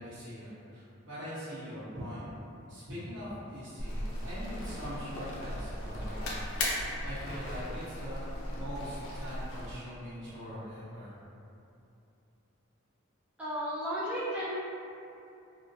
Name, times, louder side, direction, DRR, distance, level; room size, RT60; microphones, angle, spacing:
voice 1, 0.0-2.3 2.7-6.4 6.7-11.1, equal, 60° right, -12 dB, 1.1 m, -42 dB
sound 1, 3.8-9.7, left 1 dB, 80° left, 0.5 m, -37 dB
voice 2, 13.4-14.5, equal, 5° right, -12 dB, 0.4 m, -33 dB
3.1 x 2.2 x 2.7 m, 2.7 s
head